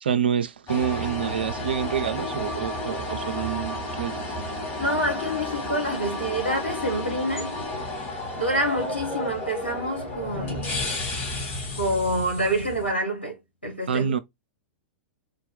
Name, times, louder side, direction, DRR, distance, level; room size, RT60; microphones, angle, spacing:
voice 1, 0.0-4.3 13.9-14.2, right 8 dB, 65° right, 0.4 m, -27 dB
sound 1, 0.7-12.9, left 1 dB, 35° left, 1.8 m, -32 dB
voice 2, 4.8-7.6 8.3-10.7 11.8-14.2, right 1 dB, 90° left, 1.3 m, -27 dB
3.7 x 2.2 x 3.5 m
figure-of-eight pair, 100°, 6 cm